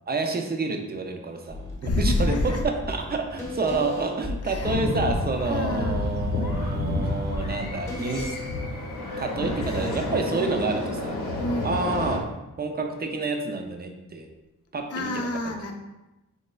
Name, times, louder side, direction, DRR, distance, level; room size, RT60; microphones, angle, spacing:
voice 1, 0.1-8.3 9.2-11.2 11.6-14.3 14.7-15.5, right 3 dB, 30° right, 4 dB, 0.4 m, -29 dB
sound 1, 1.5-8.3, left 1 dB, 10° left, 0.7 m, -35 dB
voice 2, 1.8-2.6 4.5-4.8 5.5-6.3 11.4-11.8 14.9-15.7, left 2 dB, 50° left, 3 dB, 0.5 m, -28 dB
sound 2, 4.6-12.2, left 2 dB, 85° left, 0.7 m, -30 dB
4.1 x 3.0 x 2.2 m, 1.0 s
wide cardioid pair, 150°, 31 cm